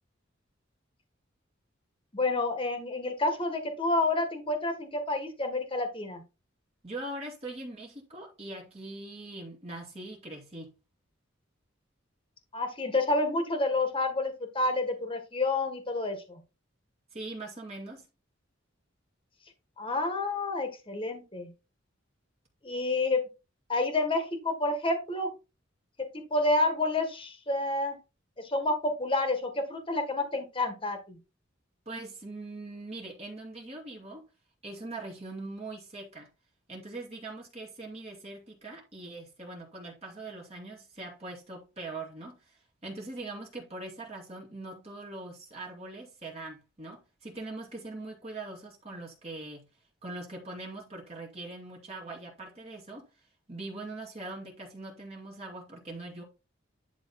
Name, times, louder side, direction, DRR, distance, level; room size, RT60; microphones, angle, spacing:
voice 1, 2.1-6.2 12.5-16.4 19.8-21.5 22.6-23.2 23.7-25.3 26.1-28.0 28.4-31.2, left 2 dB, 25° left, 1.8 m, -29 dB
voice 2, 6.8-10.7 17.1-18.1 31.9-34.2 34.6-36.3 36.7-49.7 50.0-56.2, right 2 dB, 30° right, 2.5 m, -42 dB
11.0 x 3.7 x 4.3 m
head